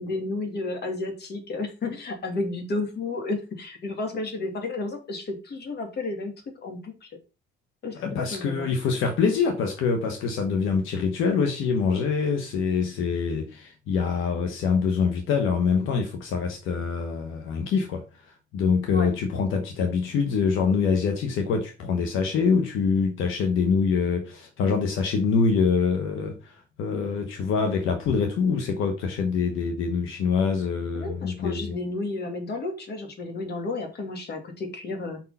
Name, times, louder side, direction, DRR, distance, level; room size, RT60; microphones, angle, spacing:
voice 1, 0.0-6.3 6.6-7.2 7.8-8.7 18.9-19.1 30.9-35.2, left 3 dB, 55° left, 2.4 m, -32 dB
voice 2, 7.9-31.8, left 5 dB, 90° left, 1.2 m, -25 dB
5.5 x 4.5 x 5.6 m
cardioid pair, 90°, 20 cm